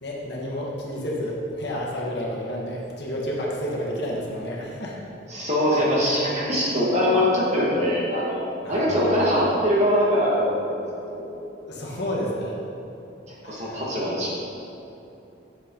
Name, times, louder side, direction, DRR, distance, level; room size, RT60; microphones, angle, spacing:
voice 1, 0.0-5.0 8.6-9.3 11.7-12.6 13.4-13.8, equal, 60° left, -3 dB, 1.5 m, -30 dB
voice 2, 5.3-8.4 8.7-10.8 11.1-11.2 13.3-14.3, equal, 35° right, -5 dB, 1.7 m, -22 dB
8.5 x 7.2 x 3.8 m, 3.0 s
head